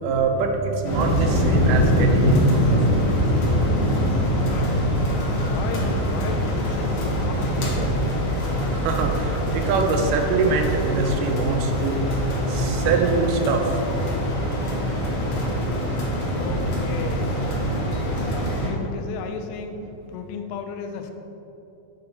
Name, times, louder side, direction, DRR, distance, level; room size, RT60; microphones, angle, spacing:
voice 1, 0.0-3.0 8.7-12.0 12.5-13.6, right 4 dB, 80° right, 3 dB, 2.1 m, -24 dB
sound 1, 0.8-18.7, equal, 55° left, 1.8 m, -23 dB
voice 2, 4.4-4.9 5.4-8.3 16.4-17.4 17.8-19.8 20.1-21.1, left 5 dB, 85° left, 5 dB, 2.5 m, -35 dB
7.7 x 5.1 x 4.2 m, 2.9 s
omnidirectional pair, 4.2 m